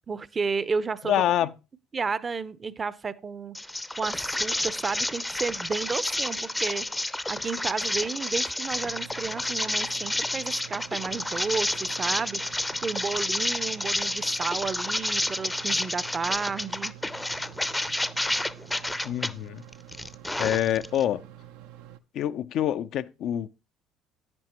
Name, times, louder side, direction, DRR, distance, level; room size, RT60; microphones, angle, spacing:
voice 1, 0.1-1.1 1.4-1.5 1.9-3.6 4.0-6.9 7.3-12.4 12.8-17.0, right 5 dB, 35° right, 0.6 m, -32 dB
voice 2, 1.0-1.5 19.0-19.6 20.4-21.2 22.1-23.5, left 11 dB, 60° left, 0.4 m, -26 dB
sound 1, 3.5-19.3 19.7-21.0, left 1 dB, 10° left, 0.6 m, -30 dB
sound 2, 8.7-22.0, right 12 dB, 75° right, 0.5 m, -48 dB
10.5 x 9.3 x 3.0 m
hypercardioid pair, 60°, 0 cm